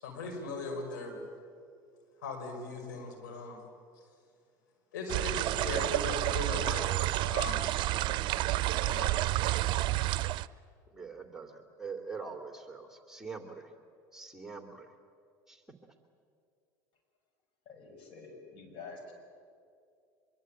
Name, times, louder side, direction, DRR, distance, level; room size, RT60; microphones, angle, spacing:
voice 1, 0.0-1.2 2.2-3.6 4.9-7.7 8.8-9.1 9.5-9.6, left 3 dB, 85° left, 3 dB, 5.5 m, -38 dB
sound 1, 5.1-10.5, right 16 dB, 55° right, 0.6 m, -30 dB
voice 2, 10.9-13.7 14.1-14.9 15.5-15.6, right 5 dB, 5° right, 4 dB, 2.8 m, -43 dB
voice 3, 17.6-19.1, left 4 dB, 55° left, 4 dB, 6.8 m, -48 dB
24.5 x 23.0 x 9.1 m, 2.3 s
hypercardioid pair, 85°, 10 cm